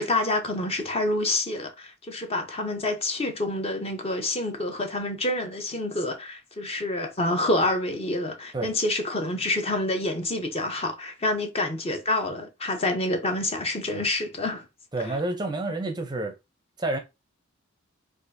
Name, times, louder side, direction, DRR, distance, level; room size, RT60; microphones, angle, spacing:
voice 1, 0.0-14.7 15.0-15.2, left 2 dB, 30° left, 0.6 m, -27 dB
voice 2, 14.9-16.3 16.8-17.0, right 2 dB, 20° right, 0.5 m, -29 dB
4.2 x 2.5 x 2.6 m
head